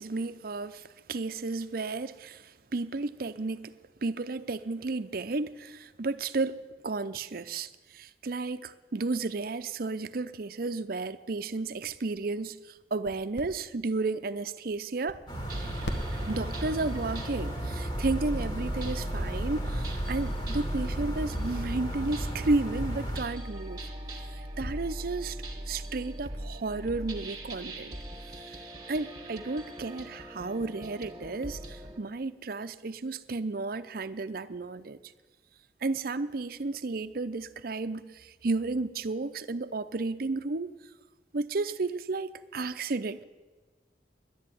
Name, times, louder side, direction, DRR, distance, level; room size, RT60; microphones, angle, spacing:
voice 1, 0.0-15.2 16.3-23.8 24.2-28.0 28.3-35.0 35.8-40.7 41.3-43.2, right 3 dB, 55° right, 0.6 m, -33 dB
sound 1, 11.8-16.8, equal, 80° left, 1.3 m, -43 dB
sound 2, 15.3-23.2, right 1 dB, 25° left, 2.1 m, -35 dB
sound 3, 15.5-32.0, right 1 dB, 25° right, 1.8 m, -38 dB
11.0 x 9.9 x 9.8 m
head